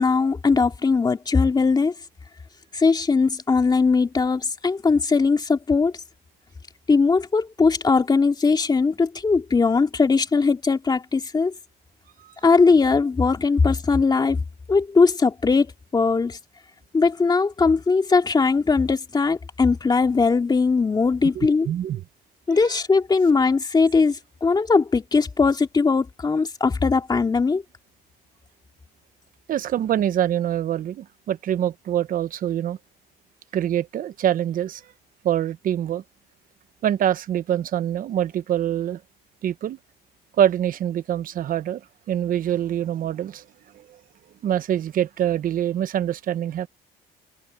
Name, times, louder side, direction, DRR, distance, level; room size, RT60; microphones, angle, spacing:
voice 1, 0.0-1.9 2.7-5.9 6.9-11.5 12.4-15.7 15.9-16.4 16.9-21.7 22.5-27.6, left 4 dB, 25° left, 2.5 m, -20 dB
voice 2, 21.4-22.0 22.6-22.7 29.5-32.8 33.5-34.8 35.2-36.0 36.8-39.0 39.4-39.8 40.4-41.8 42.1-43.4 43.7-44.0 44.4-46.7, right 10 dB, 55° right, 1.0 m, -24 dB
cardioid pair, 110°, 17 cm